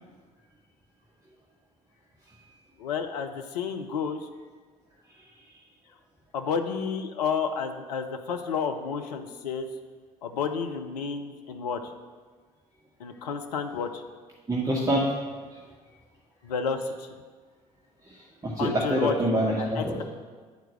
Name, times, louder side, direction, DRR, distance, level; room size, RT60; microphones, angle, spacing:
voice 1, 2.8-4.3 6.3-9.7 10.2-11.8 13.0-14.0 16.4-17.1 18.6-19.1 19.6-20.0, left 6 dB, 80° left, 6 dB, 0.6 m, -31 dB
voice 2, 14.5-15.1 18.0-20.0, right 1 dB, 15° right, -5 dB, 1.5 m, -26 dB
9.4 x 4.6 x 6.2 m, 1.5 s
figure-of-eight pair, 55°, 20 cm